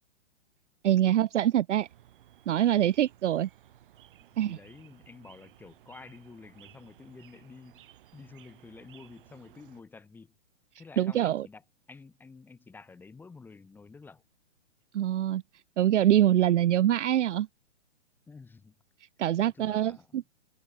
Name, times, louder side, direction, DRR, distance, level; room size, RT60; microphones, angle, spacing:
voice 1, 0.8-1.9 2.5-3.5 4.4-4.6 11.0-11.5 14.9-15.4 15.8-17.5 19.2-20.2, right 12 dB, 70° right, 0.6 m, -24 dB
sound 1, 1.7-9.8, right 12 dB, 45° right, 4.8 m, -57 dB
voice 2, 4.4-10.3 10.8-11.6 11.9-14.2 18.3-18.8 19.4-20.2, left 4 dB, 5° left, 2.0 m, -50 dB
hypercardioid pair, 160°, 37 cm